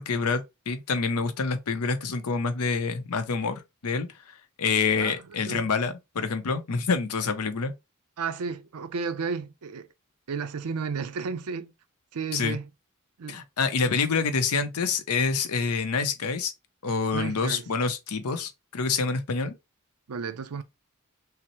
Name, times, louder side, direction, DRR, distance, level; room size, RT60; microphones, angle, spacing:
voice 1, 0.0-4.1 4.6-7.7 12.3-12.6 13.3-16.5 16.8-19.5, left 5 dB, 90° left, 0.6 m, -27 dB
voice 2, 8.2-9.9 10.3-11.7 12.1-12.7 13.2-13.4 13.8-14.0 14.2-14.3 17.1-17.7 20.1-20.6, right 5 dB, 85° right, 0.5 m, -33 dB
5.6 x 2.0 x 3.0 m
head